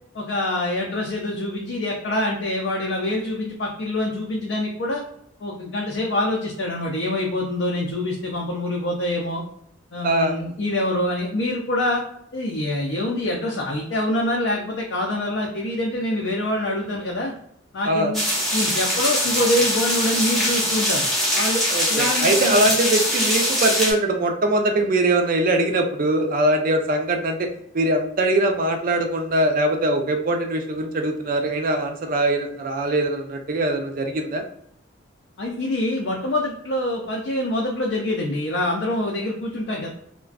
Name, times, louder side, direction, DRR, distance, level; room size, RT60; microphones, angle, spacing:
voice 1, 0.1-5.0 5.4-9.4 9.9-12.0 12.3-17.3 17.7-18.2 18.5-21.1 21.3-21.6 21.9-22.7 35.4-39.9, left 1 dB, 60° left, -2 dB, 0.4 m, -25 dB
voice 2, 10.0-10.3 17.8-18.1 21.7-27.5 27.7-34.4, right 1 dB, 45° right, 4 dB, 0.4 m, -22 dB
sound 1, 18.1-23.9, equal, ahead, 0.6 m, -22 dB
2.4 x 2.1 x 2.3 m, 0.71 s
head